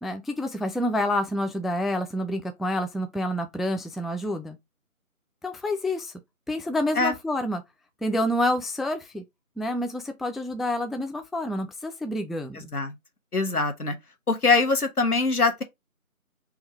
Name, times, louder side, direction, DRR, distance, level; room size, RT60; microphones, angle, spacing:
voice 1, 0.0-4.6 5.4-6.1 6.5-7.6 8.0-9.2 9.6-12.7, left 1 dB, ahead, 0.4 m, -28 dB
voice 2, 13.3-13.9 14.3-15.6, left 3 dB, 90° left, 1.2 m, -23 dB
3.6 x 2.5 x 4.4 m
figure-of-eight pair, 175°, 44 cm